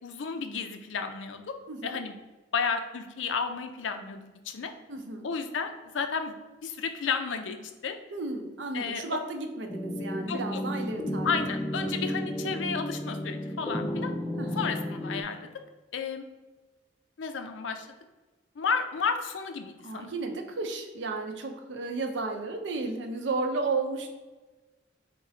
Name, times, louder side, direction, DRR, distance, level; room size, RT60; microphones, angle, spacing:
voice 1, 0.0-1.6 1.8-2.2 2.5-4.7 5.2-6.3 6.6-8.0 8.7-9.0 10.3-10.6 11.2-14.1 14.6-15.5 15.9-16.2 17.2-18.0 18.6-20.1, left 5 dB, 85° left, 7 dB, 0.5 m, -32 dB
voice 2, 1.7-2.0 4.9-5.3 8.1-11.3 11.8-12.0 14.4-14.8 19.8-24.1, right 3 dB, 70° right, 4 dB, 0.6 m, -33 dB
sound 1, 9.7-15.2, left 1 dB, 15° left, 0.3 m, -33 dB
3.8 x 2.9 x 4.2 m, 1.2 s
head